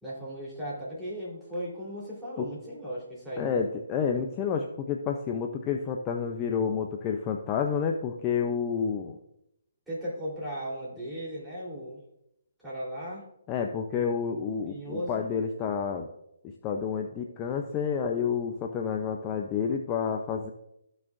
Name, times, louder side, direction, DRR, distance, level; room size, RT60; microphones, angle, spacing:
voice 1, 0.0-3.5 9.9-12.0 12.6-13.2 14.7-15.2, equal, 5° right, -8 dB, 3.6 m, -36 dB
voice 2, 3.4-9.2 13.5-16.1 16.6-20.5, left 6 dB, 25° left, 3 dB, 0.6 m, -29 dB
13.5 x 6.2 x 2.6 m, 0.80 s
hypercardioid pair, 145°, 0 cm